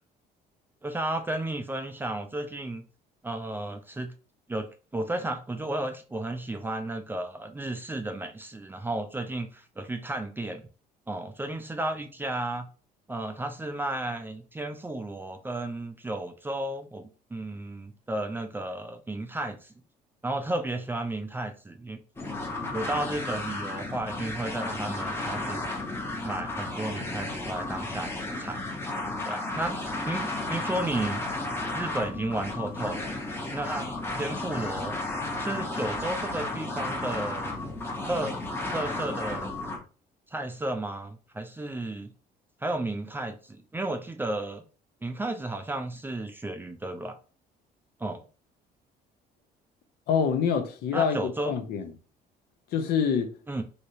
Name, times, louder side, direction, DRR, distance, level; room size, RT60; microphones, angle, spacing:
voice 1, 0.8-2.8 3.2-4.1 4.5-4.7 4.9-10.6 11.1-12.7 13.1-19.7 20.2-22.0 22.7-25.7 26.2-28.6 29.3-31.3 31.7-33.9 34.1-35.0 35.4-37.6 38.1-38.4 38.7-39.5 40.3-42.1 42.6-44.6 45.0-47.2 48.0-48.2 50.9-51.5 53.5-53.6, right 2 dB, 10° right, 0.4 m, -33 dB
sound 1, 22.2-39.8, left 2 dB, 15° left, 0.8 m, -33 dB
voice 2, 50.1-51.2 51.5-51.9 52.7-53.3, left 7 dB, 70° left, 0.7 m, -25 dB
3.1 x 2.8 x 2.6 m
cardioid pair, 110°, 17 cm